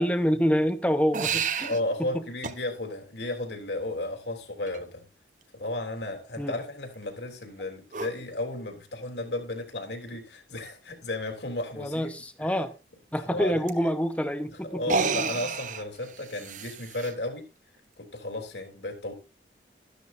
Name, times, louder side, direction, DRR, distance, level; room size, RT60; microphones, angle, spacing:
voice 1, 0.0-2.2 6.4-6.5 11.8-12.7 13.1-14.8, equal, 10° left, 1.0 m, -27 dB
sound 1, 1.1-1.8 2.4-2.6 4.7-4.8 7.9-8.1 9.6-9.7 10.1-10.2 10.5-10.6 13.7-13.8 14.8-17.1, right 5 dB, 45° right, 0.8 m, -30 dB
voice 2, 1.6-5.0 5.5-12.1 12.4-12.5 13.2-13.7 14.6-17.4 18.0-19.1, left 2 dB, 75° left, 3.3 m, -34 dB
13.0 x 12.0 x 2.7 m
head